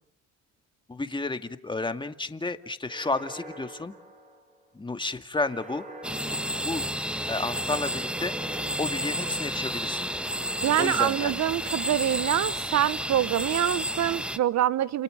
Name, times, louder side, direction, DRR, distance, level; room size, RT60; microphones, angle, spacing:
voice 1, 0.9-4.0 4.7-5.9 6.6-6.9 7.3-8.4 8.8-10.1 10.8-11.4, left 3 dB, 15° left, 8 dB, 2.2 m, -31 dB
sound 1, 2.8-4.7 5.4-7.2 7.9-9.8 10.4-12.3, right 1 dB, 20° right, 6.5 m, -46 dB
sound 2, 6.0-14.4, equal, 5° right, 1.5 m, -31 dB
voice 2, 10.6-15.0, right 11 dB, 55° right, 17 dB, 1.2 m, -25 dB
30.0 x 29.5 x 6.6 m, 0.65 s
cardioid pair, 95°, 33 cm